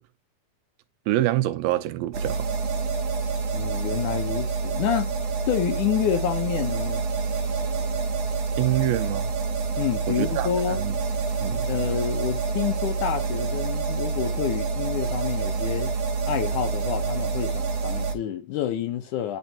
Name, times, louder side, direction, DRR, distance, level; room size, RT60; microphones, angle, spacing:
voice 1, 1.1-2.5 8.6-9.3 10.1-10.9 11.4-11.7, right 15 dB, 90° right, 2.5 m, -26 dB
sound 1, 2.1-18.1, right 4 dB, 55° right, 2.2 m, -27 dB
voice 2, 3.5-5.1 5.5-7.0 9.8-10.8 11.7-15.9 16.3-19.4, left 10 dB, 70° left, 2.1 m, -28 dB
10.5 x 4.3 x 2.8 m
omnidirectional pair, 4.1 m